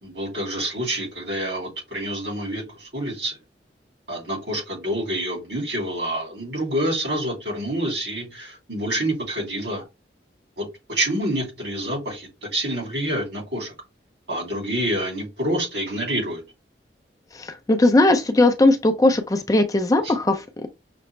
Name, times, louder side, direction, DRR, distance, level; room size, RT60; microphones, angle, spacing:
voice 1, 0.0-3.4 4.1-9.8 10.6-13.7 14.3-16.4 20.0-20.1, right 1 dB, 80° right, 2.6 m, -27 dB
voice 2, 17.3-20.7, left 2 dB, 20° left, 0.4 m, -19 dB
5.8 x 2.0 x 3.1 m
head